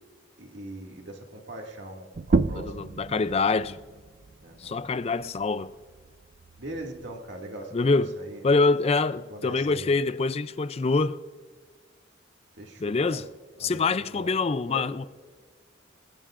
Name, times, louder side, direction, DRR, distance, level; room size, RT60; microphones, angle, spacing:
voice 1, 0.4-2.8 4.4-4.8 6.6-8.4 9.3-9.9 12.6-13.2 13.6-14.3 14.7-14.9, right 1 dB, 65° right, 2.2 m, -41 dB
sound 1, 2.1-7.4, right 3 dB, 40° right, 0.4 m, -32 dB
voice 2, 2.5-3.8 4.6-5.7 7.7-8.2 8.4-11.2 12.8-13.3 13.6-15.1, left 3 dB, 30° left, 0.4 m, -25 dB
21.5 x 20.0 x 2.5 m
head